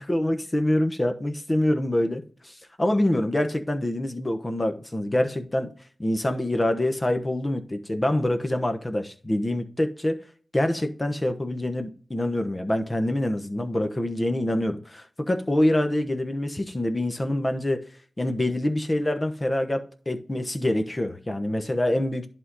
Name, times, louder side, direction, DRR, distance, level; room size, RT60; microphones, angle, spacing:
voice 1, 0.0-2.5 2.8-5.7 6.0-10.2 10.5-17.8 18.2-22.3, left 1 dB, 25° left, 1.1 m, -25 dB
11.0 x 3.7 x 4.1 m
wide cardioid pair, 75°, 0 cm